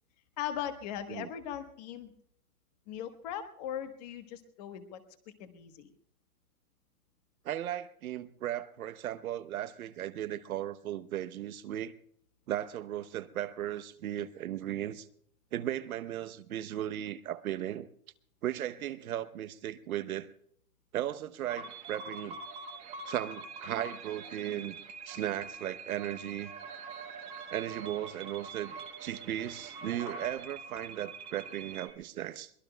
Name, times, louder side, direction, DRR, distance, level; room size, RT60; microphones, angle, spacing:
voice 1, 0.4-2.1 2.9-5.0 5.4-5.9, left 9 dB, 25° left, 8 dB, 1.2 m, -39 dB
voice 2, 7.4-11.9 12.5-15.1 15.5-17.9 18.4-20.3 20.9-22.4 23.1-24.8 25.1-26.5 27.5-28.7 29.0-32.5, right 12 dB, 65° right, 13 dB, 0.9 m, -36 dB
sound 1, 21.5-31.9, right 4 dB, 15° right, 1.0 m, -44 dB
23.0 x 20.5 x 2.2 m, 0.65 s
hypercardioid pair, 170°, 45 cm